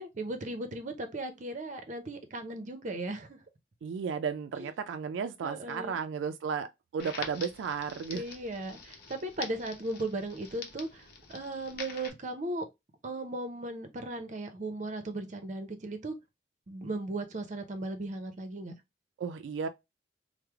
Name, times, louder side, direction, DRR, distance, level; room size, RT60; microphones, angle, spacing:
voice 1, 0.0-3.4 4.6-4.7 5.4-6.0 8.1-12.6 13.0-16.1 16.7-18.7, right 2 dB, 45° right, 0.6 m, -37 dB
voice 2, 3.8-6.7 6.9-8.2 19.2-19.7, right 6 dB, 85° right, 0.3 m, -34 dB
Crackle, 7.0-12.1, left 4 dB, 60° left, 0.8 m, -45 dB
3.1 x 2.0 x 3.4 m
head